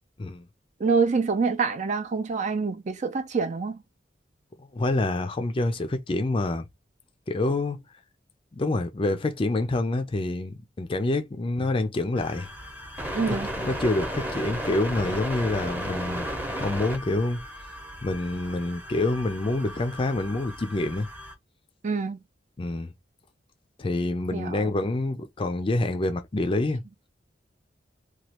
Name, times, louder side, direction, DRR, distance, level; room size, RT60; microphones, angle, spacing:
voice 1, 0.8-3.8 13.1-13.5 21.8-22.2 24.3-24.7, right 5 dB, 40° right, 0.5 m, -26 dB
voice 2, 4.6-6.7 7.3-7.8 8.5-12.5 13.6-16.3 16.6-17.4 18.0-21.1 22.6-22.9 23.8-26.8, left 2 dB, 30° left, 0.4 m, -27 dB
sound 1, 12.2-21.3, equal, 10° right, 0.8 m, -35 dB
3.0 x 2.3 x 2.9 m
head